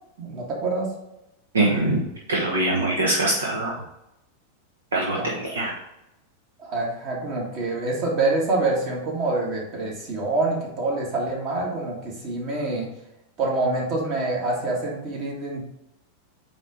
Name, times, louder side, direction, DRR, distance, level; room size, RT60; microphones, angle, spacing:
voice 1, 0.2-0.9 5.1-5.3 6.6-12.9 13.4-15.6, right 2 dB, 40° right, -2 dB, 2.3 m, -26 dB
voice 2, 1.5-3.8 4.9-5.8, right 2 dB, 70° right, -3 dB, 1.2 m, -23 dB
8.7 x 3.7 x 4.0 m, 0.88 s
figure-of-eight pair, 90°, 0 cm